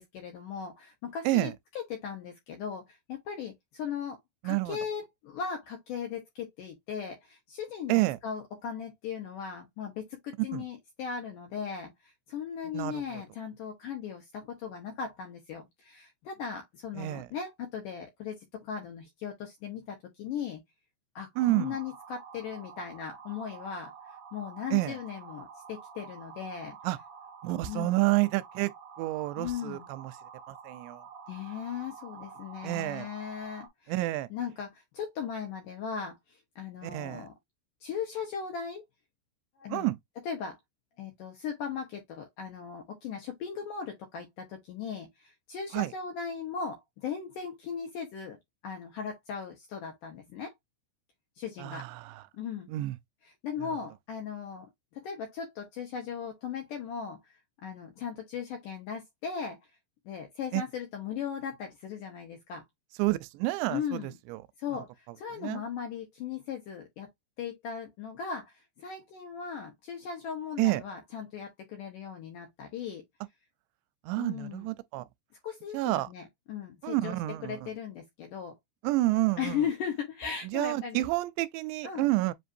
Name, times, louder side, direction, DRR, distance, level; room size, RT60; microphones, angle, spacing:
voice 1, 0.0-20.6 21.2-26.8 27.6-28.0 29.4-29.9 31.3-34.0 34.3-37.3 37.8-38.8 39.6-39.9 40.2-40.6 41.0-48.4 48.6-50.5 51.4-51.9 52.4-52.7 53.2-59.6 60.1-62.6 63.7-64.2 64.6-67.1 67.4-73.0 74.2-74.7 75.4-77.2 77.4-78.5 79.4-81.0 81.8-82.1, left 7 dB, 70° left, 2.0 m, -38 dB
voice 2, 4.4-4.8 7.9-8.2 10.5-10.6 12.7-12.9 17.0-17.3 21.4-21.8 24.7-24.9 26.8-27.0 27.4-28.7 29.0-30.1 30.5-31.0 32.6-33.1 33.9-34.3 36.8-37.3 39.7-40.0 45.7-45.9 51.6-52.1 52.7-53.0 60.5-60.6 63.0-64.0 64.3-64.4 65.4-65.6 70.6-70.8 74.1-75.0 75.7-76.1 76.8-77.6 78.8-79.6 80.5-82.3, right 19 dB, 85° right, 2.7 m, -29 dB
sound 1, 21.3-33.7, right 6 dB, 60° right, 3.1 m, -49 dB
7.8 x 2.6 x 2.6 m
omnidirectional pair, 5.0 m